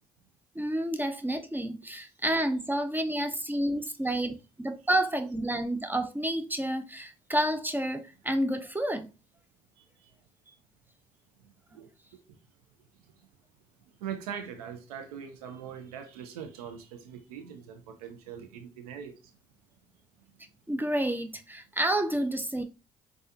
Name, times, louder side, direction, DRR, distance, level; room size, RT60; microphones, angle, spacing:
voice 1, 0.6-9.1 20.7-22.6, right 1 dB, 10° right, 0.5 m, -29 dB
voice 2, 9.8-10.1 11.4-11.9 13.0-13.3 14.0-19.3, right 8 dB, 85° right, 0.4 m, -42 dB
4.1 x 2.3 x 2.5 m
hypercardioid pair, 50°, 19 cm